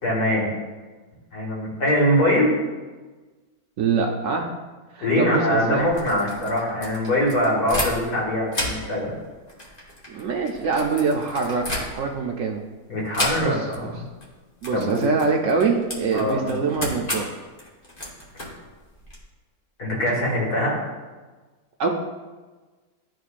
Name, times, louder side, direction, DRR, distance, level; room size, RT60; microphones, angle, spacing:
voice 1, 0.0-0.5 1.3-2.5 5.0-9.1 12.9-14.0 14.7-15.1 16.1-16.5 19.8-20.8, left 1 dB, 80° left, -4 dB, 2.2 m, -22 dB
voice 2, 3.8-4.5 4.9-5.9 10.1-12.6 13.4-13.9 14.6-17.3 21.8-21.9, right 4 dB, 65° right, 2 dB, 0.9 m, -24 dB
sound 1, 5.8-8.2 8.5-12.3 13.1-13.8 14.1-14.3 14.6-19.2, left 1 dB, 30° left, 1.2 m, -33 dB
11.5 x 3.9 x 2.5 m, 1.3 s
omnidirectional pair, 1.7 m